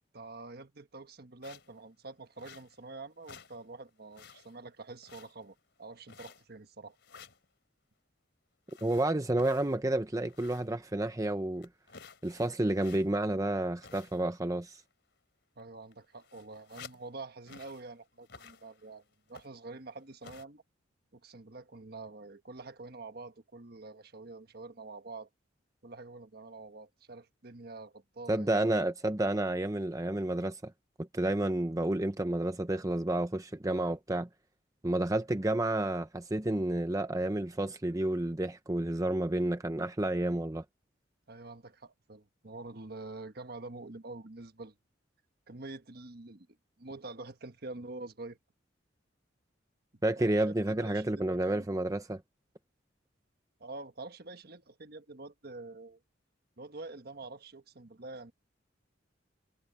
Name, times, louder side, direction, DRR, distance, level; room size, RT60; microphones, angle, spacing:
voice 1, 0.1-7.0 15.6-19.0 19.3-20.6 21.1-25.3 25.8-28.5 41.3-44.7 45.5-46.5 46.8-48.4 49.9-51.7 53.6-56.0 56.6-58.3, right 3 dB, 55° right, 1.4 m, -46 dB
sound 1, 1.4-1.8 2.4-2.9 3.2-3.6 3.9-4.6 5.0-5.6 6.1-6.6 7.0-7.4 8.7-10.8 11.1-11.2 11.6-13.3 13.8-14.4 14.6-14.9 15.6-15.7 15.9-17.1 17.4-17.9 18.2-18.9 19.3-19.7 20.2-20.4, left 5 dB, 60° left, 3.9 m, -53 dB
voice 2, 8.8-11.7 12.2-14.8 28.3-30.7 31.0-34.3 34.8-40.6 50.0-52.2, right 1 dB, 15° right, 0.7 m, -30 dB
head